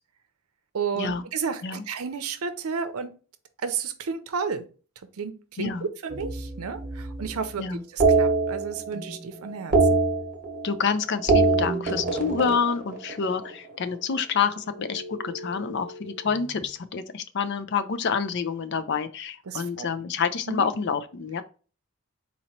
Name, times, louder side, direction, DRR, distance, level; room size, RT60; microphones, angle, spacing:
voice 1, 0.7-3.1 3.6-4.6 5.2-7.6 7.9-10.0 19.5-19.9 20.5-20.7, right 5 dB, 90° right, 10 dB, 0.6 m, -32 dB
voice 2, 5.6-5.9 7.6-7.8 10.6-21.4, left 6 dB, 55° left, 12 dB, 0.4 m, -28 dB
sound 1, 6.1-7.4 8.0-9.2 9.4-10.9 11.1-13.5 14.7-16.5, right 3 dB, 40° right, 1.0 m, -25 dB
4.1 x 2.9 x 4.3 m, 0.37 s
head